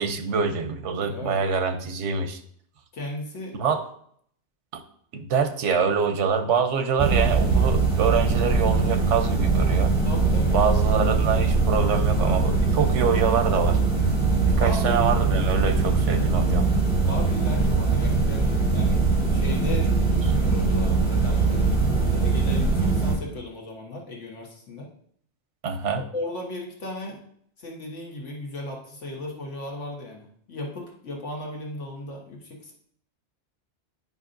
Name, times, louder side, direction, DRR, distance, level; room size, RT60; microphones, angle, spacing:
voice 1, 0.0-2.4 3.5-3.9 4.7-4.8 5.1-9.9 10.5-13.8 14.6-16.7 25.6-26.0, right 6 dB, 85° right, 8 dB, 1.1 m, -25 dB
voice 2, 1.0-1.4 2.9-3.6 10.0-10.6 14.5-15.1 17.0-19.0 19.3-19.9 20.2-24.9 26.0-27.2 27.6-32.7, left 1 dB, 90° left, -1 dB, 1.6 m, -36 dB
sound 1, 7.0-23.1, right 4 dB, 5° right, 2.7 m, -22 dB
9.5 x 5.4 x 2.6 m, 0.64 s
omnidirectional pair, 1.2 m